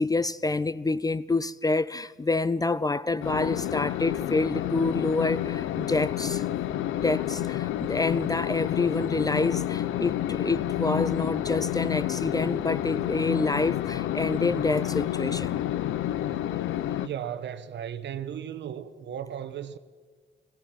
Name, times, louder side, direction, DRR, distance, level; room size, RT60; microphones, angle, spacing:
voice 1, 0.0-6.5 7.0-15.6, left 3 dB, 20° left, 0.5 m, -27 dB
sound 1, 3.2-17.1, left 12 dB, 85° left, 0.7 m, -29 dB
voice 2, 17.0-19.8, right 9 dB, 65° right, 1.4 m, -36 dB
18.5 x 16.0 x 9.1 m
cardioid pair, 90°, 20 cm